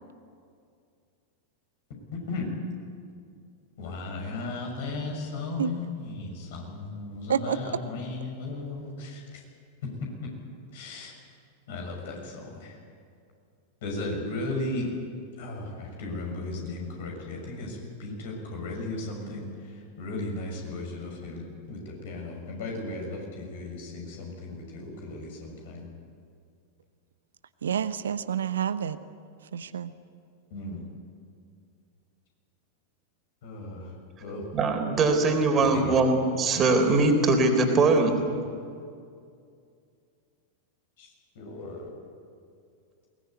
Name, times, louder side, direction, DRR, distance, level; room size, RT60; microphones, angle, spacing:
voice 1, 2.1-2.5 3.8-9.2 9.8-10.3 10.7-11.1 11.7-12.8 13.8-14.9 15.4-25.9 30.5-30.8 33.4-34.5 35.7-36.0 41.0-41.1 41.4-41.8, left 2 dB, 55° left, 1 dB, 6.4 m, -36 dB
voice 2, 27.6-29.0 29.5-29.9, right 8 dB, 65° right, 13 dB, 0.8 m, -28 dB
voice 3, 34.5-38.2, right 3 dB, 25° right, 4 dB, 3.7 m, -22 dB
21.5 x 20.0 x 9.5 m, 2.3 s
figure-of-eight pair, 90°, 0 cm